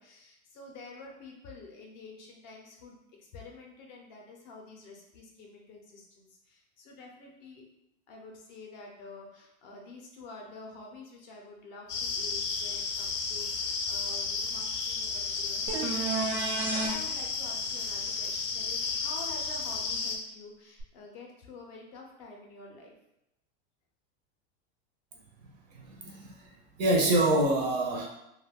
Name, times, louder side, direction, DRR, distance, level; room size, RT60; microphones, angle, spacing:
voice 1, 0.0-7.6 8.1-22.9, left 3 dB, 40° left, 0 dB, 0.5 m, -48 dB
sound 1, 11.9-20.2, left 4 dB, 90° left, 0.6 m, -33 dB
sound 2, 15.7-16.9 20.8-20.9, right 4 dB, 90° right, 0.6 m, -31 dB
voice 2, 25.7-26.5 26.8-28.1, right 1 dB, 40° right, 0 dB, 0.4 m, -26 dB
2.3 x 2.2 x 3.4 m, 0.85 s
supercardioid pair, 175°, 34 cm